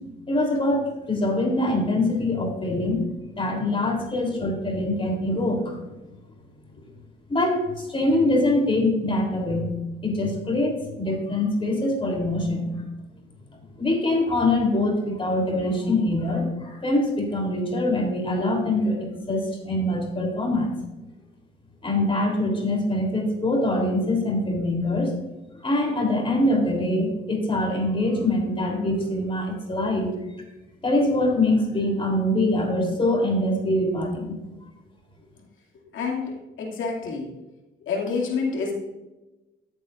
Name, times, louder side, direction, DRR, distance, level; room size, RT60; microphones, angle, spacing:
voice 1, 0.3-0.8 1.1-3.0 3.4-5.8 7.3-9.7 10.0-12.7 13.8-20.7 21.8-25.1 25.6-30.1 30.8-34.4, left 1 dB, 25° left, 1 dB, 3.4 m, -24 dB
voice 2, 35.9-37.3 37.8-38.7, left 4 dB, 80° left, -1 dB, 2.4 m, -28 dB
14.0 x 8.1 x 2.5 m, 1.0 s
cardioid pair, 90°, 20 cm